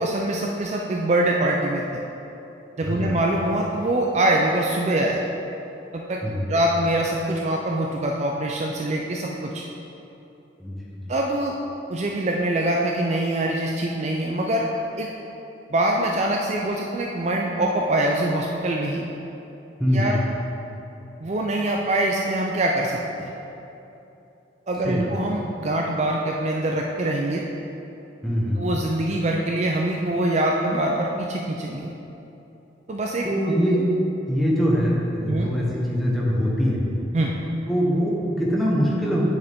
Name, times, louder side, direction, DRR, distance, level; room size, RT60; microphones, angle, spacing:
voice 1, 0.0-2.0 2.8-5.2 5.9-6.2 6.5-9.6 11.1-11.5 11.9-14.7 15.0-15.1 15.7-19.0 19.9-20.2 21.2-23.3 24.7-27.4 28.6-31.9 32.9-33.3 33.7-33.9 35.3-35.5 37.1-37.3, right 1 dB, 35° right, -1 dB, 0.4 m, -24 dB
voice 2, 2.9-3.2 6.2-6.5 10.6-10.8 11.0-11.1 19.8-20.2 24.9-25.1 28.2-28.6 33.2-33.9 34.3-36.9 37.7-39.2, equal, ahead, -5 dB, 1.1 m, -23 dB
8.2 x 6.5 x 3.6 m, 2.9 s
head